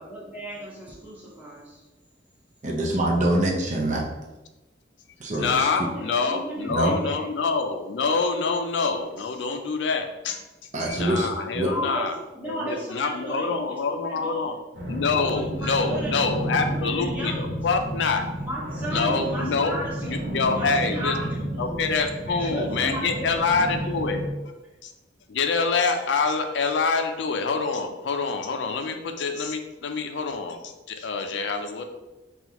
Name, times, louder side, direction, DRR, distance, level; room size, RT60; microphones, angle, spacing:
voice 1, 0.0-1.8 5.7-7.3 11.6-14.5 15.4-17.5 18.4-21.8 22.3-23.4, right 1 dB, 10° right, -6 dB, 1.2 m, -35 dB
voice 2, 2.6-4.1 5.2-5.6 6.7-6.9 10.7-11.3 11.5-11.7, right 1 dB, 45° right, 0 dB, 0.6 m, -24 dB
voice 3, 5.3-12.2 12.4-14.5 14.9-18.2 18.9-19.7 20.0-24.3 24.8-24.9 25.3-31.8, left 4 dB, 85° left, 5 dB, 0.5 m, -26 dB
sound 1, 14.7-24.3, right 1 dB, 75° right, 1.0 m, -32 dB
5.6 x 2.4 x 2.9 m, 1.0 s
head